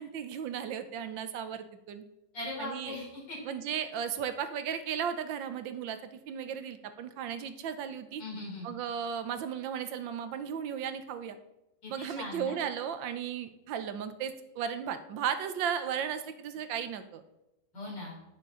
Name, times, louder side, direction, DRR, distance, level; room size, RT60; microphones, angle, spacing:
voice 1, 0.0-2.0 2.6-3.0 3.5-8.2 8.6-11.4 11.9-17.2, right 8 dB, 85° right, 10 dB, 1.5 m, -35 dB
voice 2, 2.3-3.4 8.2-8.7 11.8-12.5 17.7-18.1, left 2 dB, 70° left, -4 dB, 4.3 m, -39 dB
10.5 x 8.7 x 3.8 m, 0.92 s
omnidirectional pair, 2.0 m